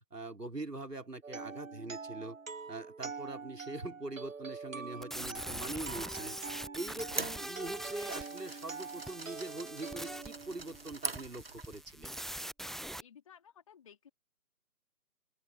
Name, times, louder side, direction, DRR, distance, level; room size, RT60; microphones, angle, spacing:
voice 1, 0.1-2.4 2.7-6.4 6.7-12.2, right 2 dB, 75° right, 4.0 m, -43 dB
sound 1, 1.2-11.1, right 4 dB, 55° right, 0.8 m, -45 dB
sound 2, 5.0-13.0, right 1 dB, ahead, 0.5 m, -43 dB
sound 3, 6.8-11.9, right 3 dB, 35° right, 1.5 m, -44 dB
voice 2, 13.0-14.1, left 8 dB, 20° left, 4.0 m, -57 dB
open air
figure-of-eight pair, 160°, 48 cm